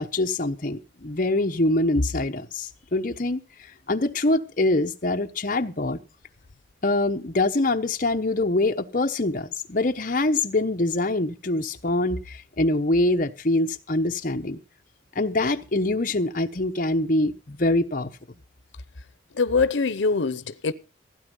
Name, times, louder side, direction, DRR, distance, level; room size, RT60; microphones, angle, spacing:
voice 1, 0.0-3.4 3.9-6.0 6.8-14.6 15.2-18.1, left 2 dB, 45° left, 1.0 m, -24 dB
voice 2, 19.3-20.7, left 4 dB, 85° left, 0.7 m, -23 dB
16.0 x 9.0 x 5.4 m
head